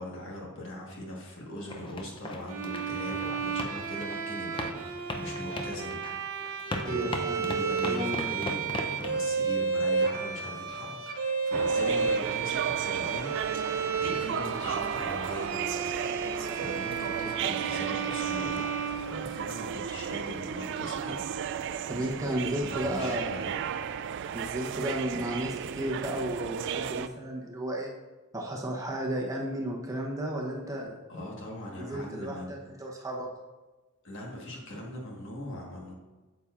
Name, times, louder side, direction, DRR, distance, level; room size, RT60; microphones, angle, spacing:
voice 1, 0.0-6.0 6.8-13.7 14.0-15.6 16.5-21.3 21.6-22.2 22.4-23.9 31.1-32.5 34.0-35.9, left 1 dB, 60° left, -1 dB, 1.6 m, -40 dB
sound 1, 1.7-9.2, left 1 dB, 25° left, 0.6 m, -38 dB
Bowed string instrument, 2.5-19.7, right 5 dB, 75° right, 0.7 m, -32 dB
voice 2, 6.8-7.5 7.8-8.3 11.8-12.0 21.9-23.4 24.3-27.9 28.3-30.9 31.8-33.3, right 1 dB, 15° right, -1 dB, 0.9 m, -33 dB
sound 2, 11.5-27.1, right 8 dB, 60° right, 0.3 m, -34 dB
8.8 x 7.0 x 2.5 m, 1.2 s
head